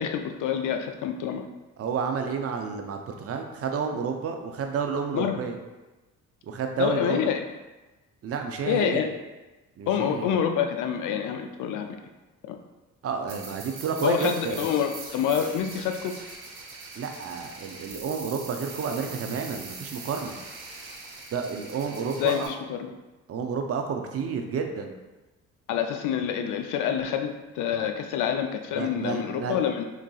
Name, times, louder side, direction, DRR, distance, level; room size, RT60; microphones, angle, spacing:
voice 1, 0.0-1.5 5.1-5.4 6.8-7.4 8.7-9.1 9.9-12.0 12.5-12.6 14.0-16.1 22.2-22.9 25.7-27.3 27.5-29.8, left 8 dB, 65° left, 5 dB, 0.5 m, -27 dB
voice 2, 1.8-5.6 6.4-7.3 8.2-9.0 9.8-10.3 13.0-14.7 17.0-20.4 21.3-22.5 23.3-24.9 28.7-29.6, right 6 dB, 45° right, 4 dB, 0.5 m, -30 dB
sound 1, 13.3-22.5, right 4 dB, 90° right, 0.7 m, -42 dB
3.9 x 2.5 x 2.3 m, 1.1 s
supercardioid pair, 65°, 34 cm